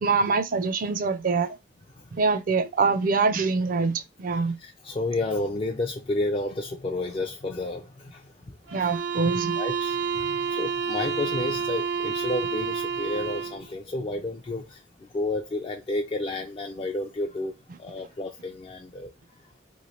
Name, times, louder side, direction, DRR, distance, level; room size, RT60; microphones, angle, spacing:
voice 1, 0.0-1.5 2.1-4.6 8.7-9.6, right 4 dB, 50° right, 0.4 m, -24 dB
voice 2, 4.3-8.3 9.6-14.8 15.1-17.5 17.8-19.1, left 2 dB, 30° left, 0.3 m, -31 dB
sound 1, 8.7-13.6, right 6 dB, 85° right, 0.8 m, -29 dB
3.1 x 2.5 x 2.8 m
head